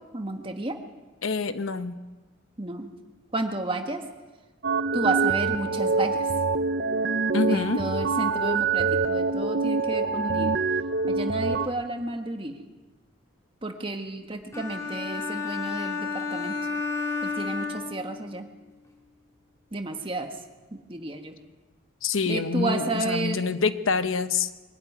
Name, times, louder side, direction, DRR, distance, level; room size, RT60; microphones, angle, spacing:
voice 1, 0.1-0.8 2.6-2.9 3.3-4.1 4.9-6.3 7.4-10.6 11.1-12.6 13.6-16.6 17.2-18.5 19.7-20.4 20.7-21.4 22.2-23.4, right 2 dB, 25° right, 5 dB, 1.6 m, -32 dB
voice 2, 1.2-2.0 7.3-7.8 22.0-24.5, left 4 dB, 80° left, 10 dB, 1.0 m, -26 dB
sound 1, 4.6-11.7, right 4 dB, 50° right, 0.7 m, -25 dB
sound 2, 14.5-18.4, left 4 dB, 15° left, 3.2 m, -31 dB
23.0 x 12.5 x 9.4 m, 1.2 s
head